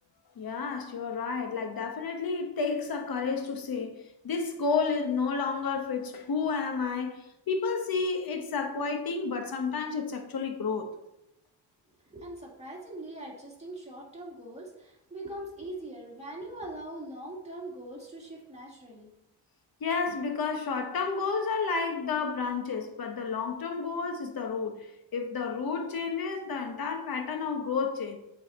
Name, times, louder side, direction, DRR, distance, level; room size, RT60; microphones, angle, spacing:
voice 1, 0.4-10.9 19.8-24.9 25.1-28.2, left 5 dB, 55° left, 1.2 m, -31 dB
voice 2, 12.1-19.1, right 1 dB, 15° right, 2.2 m, -42 dB
8.1 x 4.2 x 4.1 m
cardioid pair, 110°, 44 cm